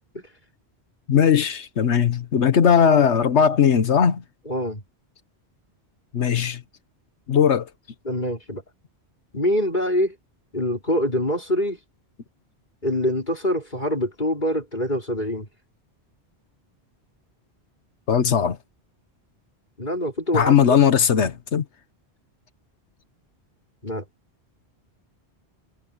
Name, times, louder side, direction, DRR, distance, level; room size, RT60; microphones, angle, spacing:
voice 1, 1.1-4.2 6.1-6.6 7.3-7.7 18.1-18.6 20.3-21.6, left 7 dB, 90° left, 1.4 m, -18 dB
voice 2, 4.4-4.8 8.0-8.6 9.3-10.2 10.5-11.8 12.8-15.5 19.8-20.8 23.8-24.0, equal, 45° left, 5.7 m, -25 dB
omnidirectional pair, 1.1 m